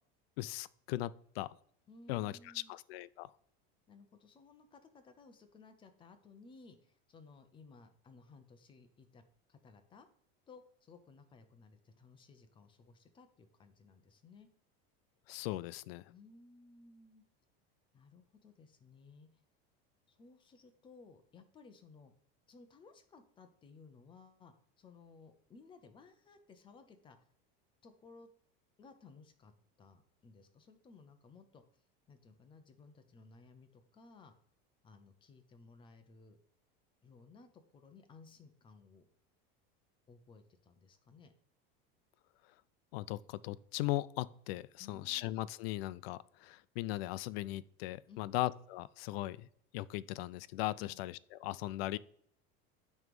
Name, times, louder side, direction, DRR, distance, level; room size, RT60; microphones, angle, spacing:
voice 1, 0.4-1.5 2.1-3.3 15.3-16.0 42.9-49.5 49.7-52.0, left 17 dB, 85° left, 18 dB, 0.5 m, -38 dB
voice 2, 1.9-2.7 3.9-9.2 9.5-10.1 10.5-14.5 16.1-17.2 17.9-19.3 20.1-22.1 22.5-27.2 27.8-28.3 28.8-29.5 29.8-31.6 32.1-34.3 34.8-36.4 37.0-39.1 40.1-41.3 44.8-45.4 48.1-48.4 50.8-51.0, left 4 dB, 15° left, 8 dB, 0.6 m, -59 dB
9.4 x 3.2 x 5.2 m, 0.64 s
cardioid pair, 165°, 29 cm